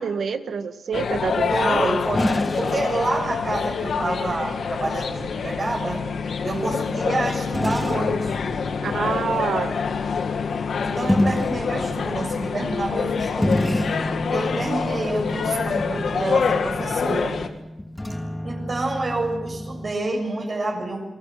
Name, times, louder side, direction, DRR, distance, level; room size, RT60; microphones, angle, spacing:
voice 1, 0.0-2.0 8.8-9.7, right 6 dB, 80° right, 9 dB, 1.7 m, -27 dB
sound 1, 0.9-17.5, left 5 dB, 80° left, 1.8 m, -26 dB
voice 2, 1.5-6.0 6.4-8.4 10.8-13.8 14.3-17.4 18.4-21.1, right 2 dB, 55° right, 0 dB, 7.3 m, -28 dB
sound 2, 2.1-3.7 7.5-9.1 11.1-19.9, left 1 dB, 15° left, 2.3 m, -29 dB
28.0 x 18.5 x 7.8 m, 1.0 s
cardioid pair, 50°, 0 cm